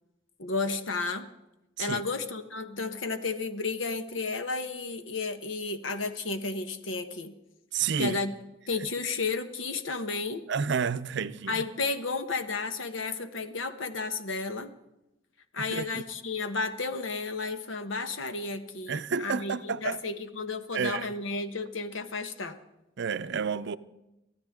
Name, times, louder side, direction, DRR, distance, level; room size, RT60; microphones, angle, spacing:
voice 1, 0.4-1.3 1.8-7.3 8.0-8.3 8.7-10.4 11.5-14.7 15.5-22.6, left 3 dB, 80° left, 1.2 m, -32 dB
voice 2, 7.7-8.2 10.5-11.6 15.7-16.0 18.9-20.0 20.7-21.1 23.0-23.8, right 6 dB, 65° right, 0.6 m, -30 dB
24.0 x 14.5 x 3.7 m
head